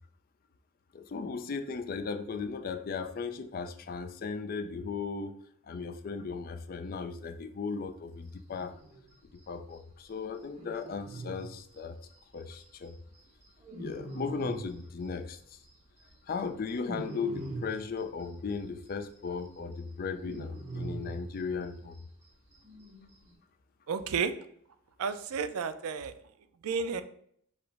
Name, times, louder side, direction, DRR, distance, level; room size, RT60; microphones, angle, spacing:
voice 1, 0.9-5.3 5.7-8.7 9.5-12.0 12.3-13.0 13.8-15.6 16.3-22.0, left 5 dB, 40° left, 9 dB, 0.3 m, -36 dB
sound 1, 8.5-9.1 9.4-9.5 9.7-9.8 10.1-10.2 10.4-12.9 13.1-15.4 15.6-18.5 18.9-19.0 19.3-22.0 22.2-22.3 22.5-23.3, right 2 dB, 30° right, 1.1 m, -42 dB
voice 2, 23.9-24.3 25.0-26.1 26.6-27.0, right 5 dB, 85° right, 10 dB, 0.4 m, -31 dB
4.9 x 2.0 x 4.6 m, 0.65 s
head